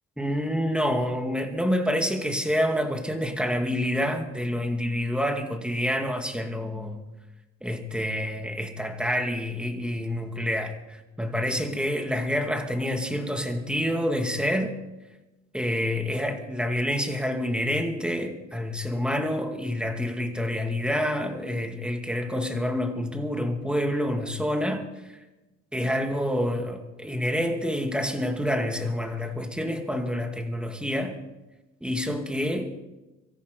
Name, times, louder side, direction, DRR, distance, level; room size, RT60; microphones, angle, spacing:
voice 1, 0.2-7.0 7.6-14.8 15.5-24.8 25.7-31.2 31.8-32.8, equal, 5° right, 2.4 m, -27 dB
24.5 x 14.5 x 4.1 m
cardioid pair, 90°, 30 cm